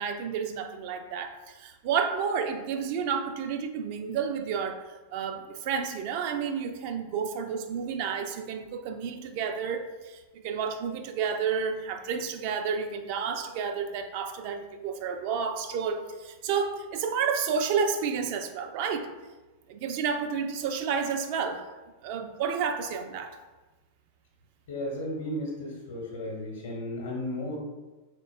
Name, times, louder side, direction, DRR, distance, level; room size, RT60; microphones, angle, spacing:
voice 1, 0.0-4.9 5.1-19.1 19.7-21.6 22.0-23.3, right 6 dB, 45° right, 6 dB, 0.5 m, -30 dB
voice 2, 24.7-27.6, left 1 dB, 60° left, -1 dB, 0.9 m, -34 dB
5.0 x 4.0 x 2.5 m, 1.2 s
figure-of-eight pair, 90°, 0 cm